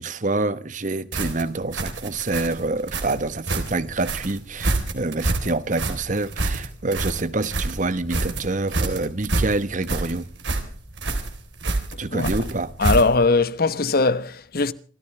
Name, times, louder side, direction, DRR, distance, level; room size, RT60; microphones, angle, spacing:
voice 1, 0.0-10.3 12.0-12.7, right 2 dB, 45° right, 1.0 m, -26 dB
sound 1, 1.1-13.3, right 2 dB, 85° right, 3.7 m, -27 dB
voice 2, 12.8-14.7, left 3 dB, 55° left, 1.0 m, -20 dB
28.0 x 14.5 x 3.3 m
head